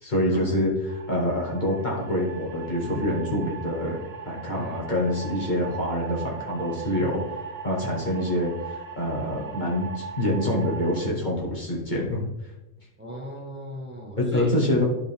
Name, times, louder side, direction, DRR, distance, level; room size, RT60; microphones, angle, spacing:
voice 1, 0.0-4.0 4.3-7.2 7.6-12.2 14.2-14.8, left 1 dB, 35° left, -3 dB, 1.9 m, -26 dB
sound 1, 0.9-11.1, right 7 dB, 55° right, 1.0 m, -39 dB
voice 2, 13.0-14.5, equal, 10° right, -2 dB, 1.4 m, -37 dB
10.5 x 5.2 x 3.5 m, 0.97 s
omnidirectional pair, 1.3 m